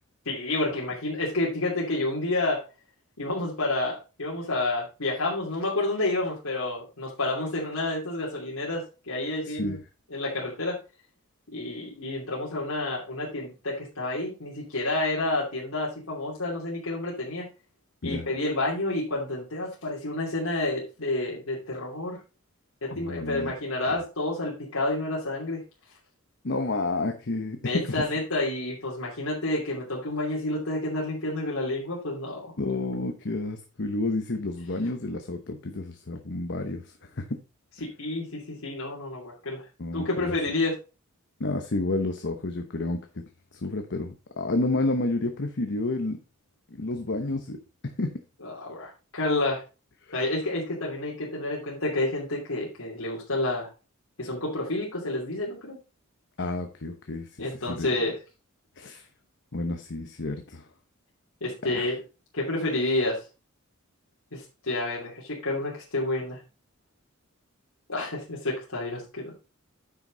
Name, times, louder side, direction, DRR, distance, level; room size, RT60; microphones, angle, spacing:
voice 1, 0.2-2.6 3.2-9.8 10.1-10.8 11.5-17.5 18.0-22.2 22.8-25.6 27.6-32.5 37.8-39.6 39.9-40.8 48.4-49.6 50.1-53.7 54.2-55.8 57.4-58.1 61.4-62.0 62.3-63.2 64.3-66.4 67.9-69.3, left 2 dB, 85° left, -5 dB, 2.9 m, -29 dB
voice 2, 9.4-9.8 18.0-18.3 22.9-23.5 26.4-28.0 32.6-37.4 39.8-40.4 41.4-43.2 43.5-46.2 46.8-47.6 48.0-48.1 50.0-50.2 56.4-57.3 57.7-57.9 58.8-59.1 59.5-60.7 61.6-61.9, left 2 dB, 55° left, 6 dB, 1.0 m, -30 dB
9.9 x 6.2 x 3.9 m, 0.31 s
head